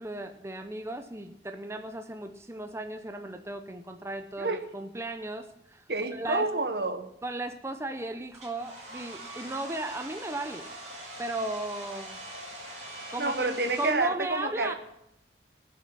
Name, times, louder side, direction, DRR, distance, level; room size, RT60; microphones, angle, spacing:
voice 1, 0.0-5.8 6.1-6.5 7.2-10.7 11.2-12.2 13.1-14.7, right 2 dB, 15° right, 6 dB, 0.8 m, -36 dB
voice 2, 5.9-7.1 13.2-14.7, right 2 dB, 60° right, 9 dB, 1.5 m, -29 dB
Domestic sounds home sounds, 8.3-13.9, right 1 dB, 40° right, 4.9 m, -43 dB
20.5 x 7.5 x 5.9 m, 0.81 s
head